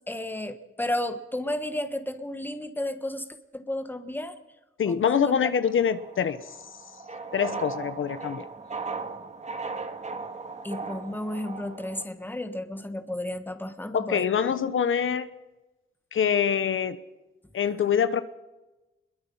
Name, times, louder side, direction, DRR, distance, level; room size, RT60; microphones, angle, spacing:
voice 1, 0.0-3.3 3.5-4.3 4.9-5.5 10.6-14.3, left 1 dB, 10° left, 9 dB, 1.6 m, -32 dB
voice 2, 4.8-6.4 7.3-8.4 13.9-15.3 16.1-17.0 17.5-18.2, left 7 dB, 70° left, 12 dB, 1.1 m, -25 dB
sound 1, 5.5-12.0, right 4 dB, 35° right, 1.8 m, -37 dB
25.0 x 22.0 x 5.7 m, 1.0 s
wide cardioid pair, 135°, 21 cm